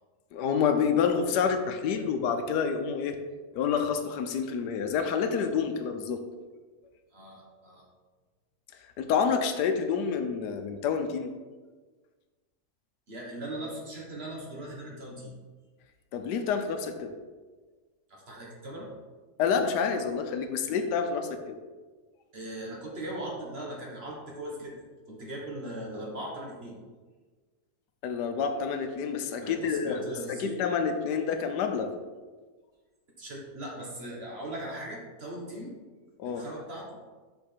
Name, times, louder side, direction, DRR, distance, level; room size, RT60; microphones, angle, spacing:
voice 1, 0.3-3.2 3.5-6.2 9.0-11.3 16.1-17.1 19.4-21.6 28.0-30.0 30.3-31.9 36.2-36.4, left 6 dB, 85° left, 6 dB, 1.3 m, -28 dB
voice 2, 7.1-7.8 13.1-15.3 18.1-18.9 19.6-19.8 20.6-20.8 22.3-26.7 29.4-30.6 33.2-35.7 36.2-36.9, right 1 dB, 40° right, -2 dB, 1.5 m, -39 dB
5.7 x 5.3 x 4.4 m, 1.4 s
omnidirectional pair, 1.7 m